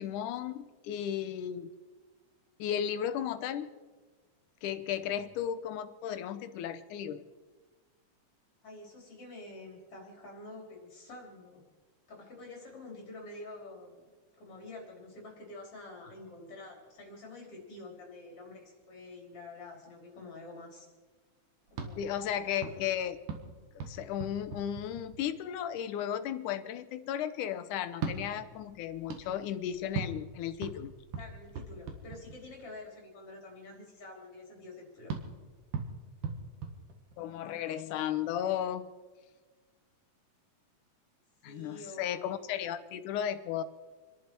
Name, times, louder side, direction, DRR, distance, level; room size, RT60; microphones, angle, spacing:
voice 1, 0.0-1.7 2.6-3.7 4.6-7.3 22.0-23.2 23.8-30.9 37.2-38.9 41.4-43.6, left 10 dB, 80° left, 11 dB, 2.3 m, -35 dB
voice 2, 8.6-11.6 12.1-14.1 14.4-20.9 21.7-22.2 22.4-22.8 31.1-35.1 41.4-42.4, left 2 dB, 45° left, 0 dB, 4.5 m, -48 dB
sound 1, 21.7-25.5 27.9-32.8 35.1-37.5, right 4 dB, 75° right, 3.2 m, -41 dB
29.5 x 11.0 x 4.5 m, 1.4 s
omnidirectional pair, 3.6 m